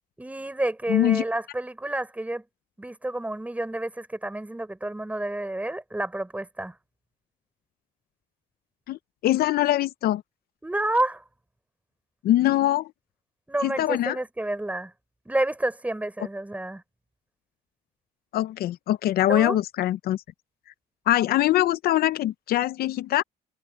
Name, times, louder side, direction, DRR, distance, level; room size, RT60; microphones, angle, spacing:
voice 1, 0.2-2.4 2.8-6.8 10.6-11.2 13.5-14.9 15.3-16.8 19.3-19.6, right 1 dB, 10° right, 5.1 m, -29 dB
voice 2, 0.9-1.2 8.9-10.2 12.2-12.9 13.6-14.2 18.3-20.2 21.1-23.2, left 13 dB, 65° left, 0.6 m, -23 dB
cardioid pair, 110°, 17 cm